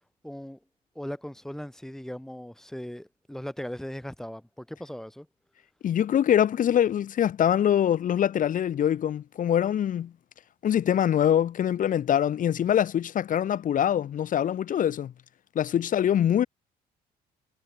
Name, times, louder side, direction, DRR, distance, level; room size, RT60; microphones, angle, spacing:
voice 1, 0.2-0.6 0.9-5.3, equal, 5° left, 4.6 m, -38 dB
voice 2, 5.8-10.1 10.6-15.1 15.6-16.5, left 10 dB, 50° left, 2.2 m, -24 dB
cardioid pair, 110°, 17 cm